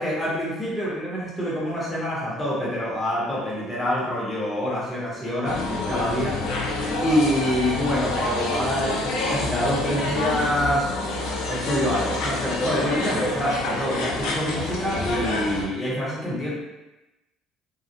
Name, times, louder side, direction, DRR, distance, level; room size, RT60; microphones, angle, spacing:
voice 1, 0.0-6.4 7.0-10.9 11.5-16.5, equal, 10° left, -7 dB, 0.8 m, -26 dB
sound 1, 5.4-15.6, left 2 dB, 70° left, 0.4 m, -27 dB
2.3 x 2.1 x 2.6 m, 1.0 s
cardioid pair, 125°, 0 cm